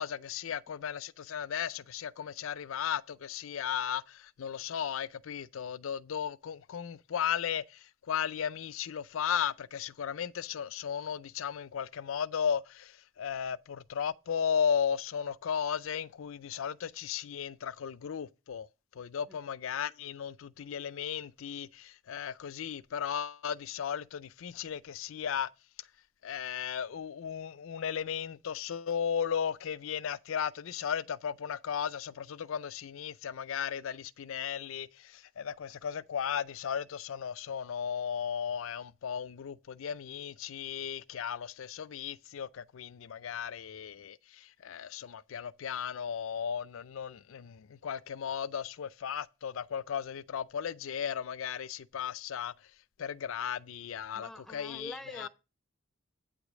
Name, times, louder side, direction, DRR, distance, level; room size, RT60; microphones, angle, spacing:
voice 1, 0.0-18.7 18.9-25.5 25.8-25.9 26.2-52.7 53.0-55.3, left 8 dB, 70° left, 0.4 m, -35 dB
voice 2, 54.1-55.3, left 1 dB, ahead, 0.4 m, -44 dB
8.7 x 5.0 x 6.1 m
head